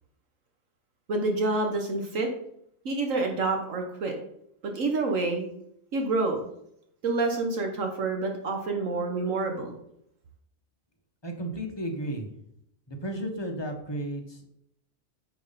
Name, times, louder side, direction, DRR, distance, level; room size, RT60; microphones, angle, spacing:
voice 1, 1.1-2.3 2.8-4.1 4.6-5.5 5.9-6.4 7.0-9.8, right 3 dB, 70° right, 3 dB, 1.5 m, -28 dB
voice 2, 11.2-12.3 12.9-14.5, right 1 dB, 20° left, 2 dB, 1.2 m, -33 dB
9.2 x 5.4 x 4.1 m, 0.74 s
omnidirectional pair, 1.4 m